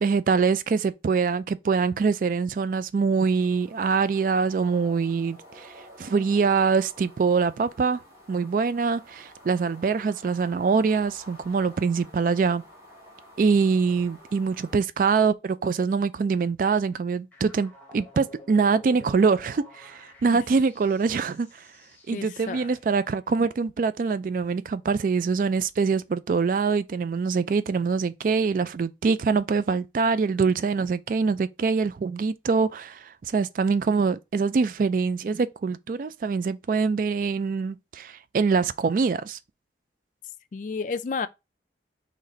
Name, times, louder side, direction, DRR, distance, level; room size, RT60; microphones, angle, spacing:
voice 1, 0.0-8.0 8.3-12.6 13.4-21.7 22.1-39.4, right 5 dB, 50° right, 0.3 m, -24 dB
sound 1, 3.2-14.8, equal, 20° right, 1.7 m, -50 dB
sound 2, 17.3-23.0, left 2 dB, 10° left, 1.0 m, -50 dB
voice 2, 22.1-22.7 40.5-41.3, left 5 dB, 45° left, 0.3 m, -31 dB
4.1 x 3.2 x 3.8 m
head